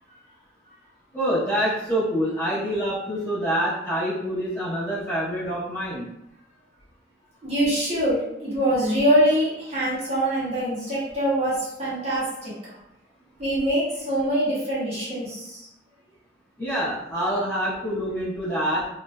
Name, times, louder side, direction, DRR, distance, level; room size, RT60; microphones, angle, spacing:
voice 1, 1.1-6.0 16.6-18.8, equal, 10° left, -12 dB, 1.1 m, -26 dB
voice 2, 7.4-12.5 13.4-15.6, equal, 35° right, -9 dB, 1.1 m, -24 dB
3.2 x 2.1 x 2.4 m, 0.84 s
head